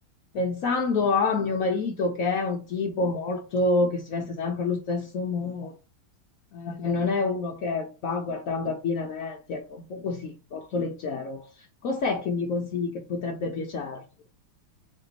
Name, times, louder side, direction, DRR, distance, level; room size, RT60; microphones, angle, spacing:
voice 1, 0.3-5.7 6.5-11.4 11.8-14.0, left 3 dB, 75° left, 0.7 m, -28 dB
3.6 x 3.3 x 3.9 m
omnidirectional pair, 2.2 m